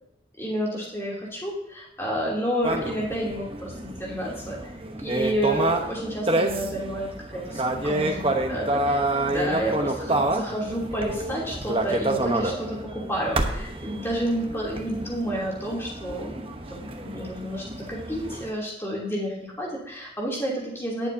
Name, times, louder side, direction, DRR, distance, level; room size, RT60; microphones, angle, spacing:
voice 1, 0.4-4.7 5.0-9.0 9.3-21.1, equal, 15° left, -4 dB, 3.0 m, -30 dB
sound 1, 2.6-18.5, right 2 dB, 30° right, 1.0 m, -28 dB
19.0 x 7.1 x 2.8 m, 0.86 s
head